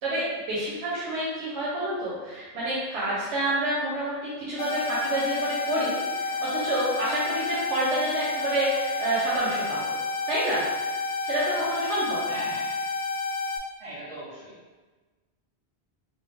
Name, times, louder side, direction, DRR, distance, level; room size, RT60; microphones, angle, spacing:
voice 1, 0.0-9.9 10.3-10.7 11.2-12.4, right 1 dB, 90° right, -7 dB, 1.0 m, -28 dB
sound 1, 4.6-13.6, left 4 dB, 70° left, 0.8 m, -30 dB
voice 2, 12.3-12.7 13.8-14.5, right 1 dB, 70° right, -7 dB, 1.4 m, -39 dB
3.2 x 2.1 x 3.4 m, 1.3 s
omnidirectional pair, 1.1 m